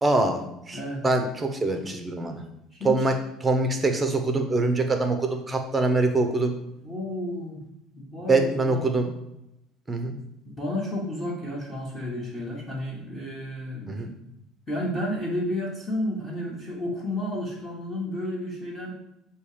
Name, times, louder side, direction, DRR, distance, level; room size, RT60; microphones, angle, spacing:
voice 1, 0.0-2.4 2.8-3.1 3.4-6.5 8.3-9.1 9.9-10.2 13.9-14.1, right 2 dB, 15° right, 5 dB, 0.7 m, -24 dB
voice 2, 0.7-1.0 2.7-3.1 6.8-7.6 7.9-8.8 10.6-14.0 14.7-18.9, left 1 dB, 15° left, -4 dB, 1.1 m, -31 dB
6.7 x 2.8 x 4.9 m, 0.83 s
cardioid pair, 160°, 0 cm